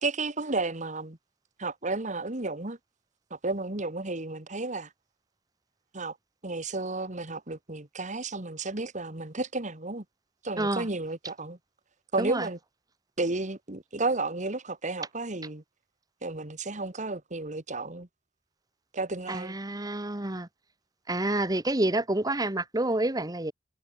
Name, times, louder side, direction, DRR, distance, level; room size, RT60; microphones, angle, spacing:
voice 1, 0.0-1.2 1.6-2.8 3.3-4.9 5.9-6.2 6.4-10.0 10.4-11.6 12.1-12.6 13.2-15.6 16.2-18.1 18.9-19.5, right 3 dB, 40° right, 2.0 m, -32 dB
voice 2, 10.6-10.9 12.2-12.5 19.3-20.5 21.1-23.5, right 1 dB, 20° right, 1.5 m, -28 dB
head